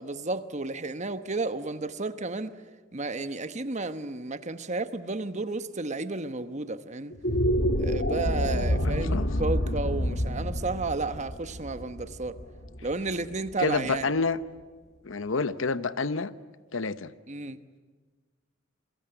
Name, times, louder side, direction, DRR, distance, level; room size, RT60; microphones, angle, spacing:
voice 1, 0.0-2.6 2.9-7.1 7.8-12.4 12.8-14.1 17.3-17.6, right 3 dB, 35° right, 1.1 m, -32 dB
sound 1, 7.1-13.5, equal, 55° left, 1.8 m, -28 dB
voice 2, 8.8-9.3 13.6-14.4 15.0-16.3 16.7-17.1, left 4 dB, 80° left, 0.9 m, -28 dB
29.0 x 22.5 x 9.1 m
head